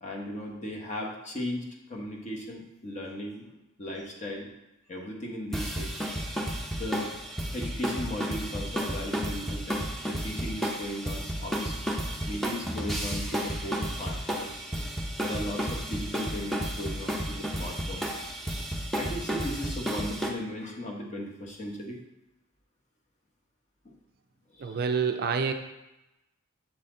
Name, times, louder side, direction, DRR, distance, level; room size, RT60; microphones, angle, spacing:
voice 1, 0.0-4.5 4.9-6.1 6.8-7.1 7.5-9.8 10.1-11.8 12.3-14.7 15.2-18.2 18.9-22.0 24.5-24.8, left 1 dB, 35° left, -1 dB, 1.0 m, -37 dB
sound 1, 5.5-20.3, equal, ahead, 0.7 m, -32 dB
voice 2, 24.6-25.5, right 5 dB, 45° right, 6 dB, 0.4 m, -27 dB
7.4 x 4.2 x 3.8 m, 0.95 s
head